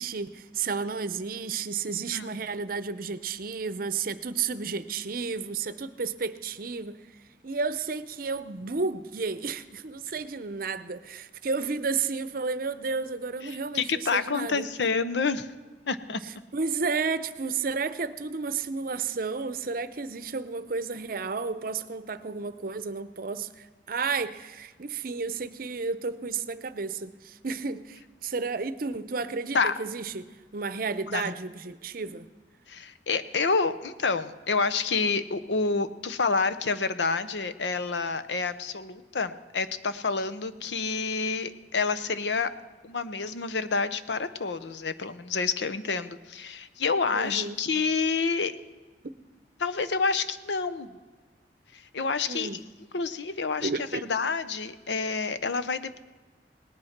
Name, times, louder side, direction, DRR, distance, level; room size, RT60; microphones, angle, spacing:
voice 1, 0.0-7.0 7.4-14.7 16.2-30.3 30.5-32.3 47.1-47.6 52.3-52.6 53.6-54.1, right 4 dB, 55° right, 0.7 m, -32 dB
voice 2, 13.4-15.5 15.9-16.2 29.5-29.7 31.1-31.3 32.7-42.5 42.8-48.5 49.6-51.0 51.7-52.6 52.9-53.7 54.1-56.0, left 4 dB, 85° left, 0.8 m, -28 dB
18.5 x 11.0 x 5.9 m
head